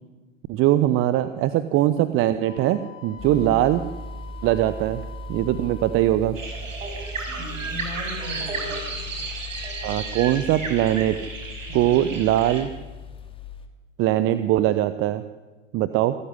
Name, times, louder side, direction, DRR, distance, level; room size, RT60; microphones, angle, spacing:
voice 1, 0.5-3.8 4.4-5.0 5.3-6.4 9.8-11.2 11.7-12.7 14.0-15.2 15.7-16.2, right 13 dB, 35° right, 13 dB, 1.0 m, -21 dB
Wind instrument woodwind instrument, 2.5-6.2, left 9 dB, 70° left, 2.0 m, -45 dB
sound 1, 3.2-13.7, left 2 dB, 15° left, 2.7 m, -38 dB
voice 2, 3.2-3.6 7.3-9.0 11.7-12.0, equal, 55° right, 5 dB, 7.2 m, -38 dB
sound 2, 6.3-12.6, right 3 dB, 75° right, 5.8 m, -33 dB
26.5 x 15.0 x 9.9 m, 1.3 s
figure-of-eight pair, 95°, 39 cm